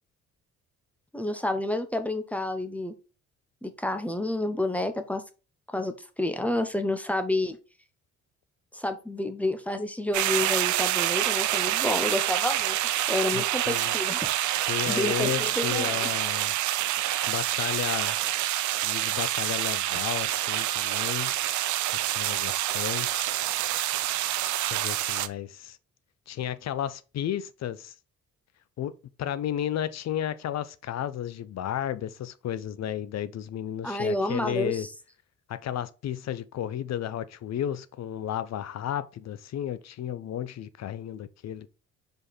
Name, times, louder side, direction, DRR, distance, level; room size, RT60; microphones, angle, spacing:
voice 1, 1.1-2.9 3.6-5.2 5.7-7.6 8.7-12.8 13.1-14.3 14.8-16.1 33.8-34.9, left 1 dB, 5° left, 1.0 m, -29 dB
sound 1, 10.1-25.3, right 14 dB, 75° right, 0.6 m, -27 dB
voice 2, 13.3-13.9 14.7-16.5 17.3-18.2 18.8-21.3 22.2-23.3 24.6-25.8 26.3-27.9 28.8-28.9 29.2-34.9 35.5-41.7, left 10 dB, 60° left, 0.7 m, -33 dB
5.2 x 4.7 x 4.1 m
cardioid pair, 90°, 30 cm